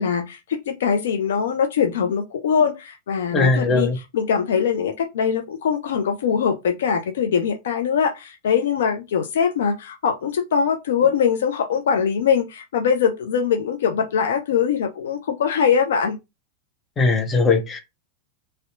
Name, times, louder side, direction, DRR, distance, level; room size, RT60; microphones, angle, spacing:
voice 1, 0.0-3.9 4.1-16.2, left 7 dB, 60° left, 0.3 m, -22 dB
voice 2, 3.3-4.0 17.0-17.8, left 3 dB, 20° left, 0.6 m, -19 dB
2.6 x 2.1 x 2.5 m
figure-of-eight pair, 90°, 0 cm